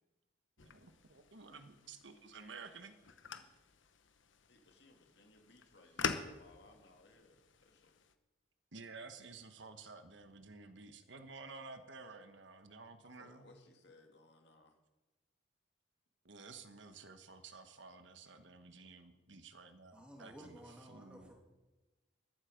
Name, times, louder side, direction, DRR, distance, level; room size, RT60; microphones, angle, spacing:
sound 1, 0.6-8.1, left 6 dB, 80° left, 1.0 m, -46 dB
voice 1, 0.6-3.0 8.7-13.6 16.2-20.6 20.9-21.3, right 4 dB, 70° right, 9 dB, 1.2 m, -53 dB
voice 2, 4.5-7.9 13.0-14.8, left 2 dB, 60° left, 3 dB, 2.3 m, -63 dB
voice 3, 19.9-21.3, equal, 5° right, 0 dB, 2.7 m, -54 dB
14.0 x 12.5 x 5.2 m, 1.1 s
head